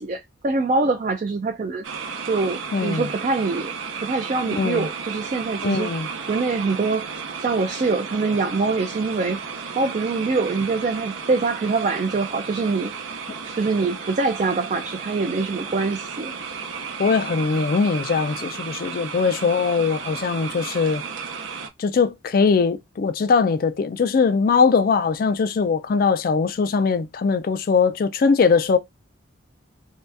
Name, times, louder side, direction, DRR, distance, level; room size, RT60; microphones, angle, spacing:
voice 1, 0.0-1.9 2.2-3.7 4.0-7.1 7.4-9.4 9.8-12.9 13.5-16.3, right 3 dB, 40° right, 0.4 m, -24 dB
sound 1, 1.8-21.7, right 5 dB, 80° right, 0.6 m, -34 dB
voice 2, 2.7-3.0 4.6-4.9 5.6-6.1 17.0-21.0 21.8-28.8, left 5 dB, 45° left, 0.3 m, -21 dB
2.7 x 2.3 x 3.3 m
head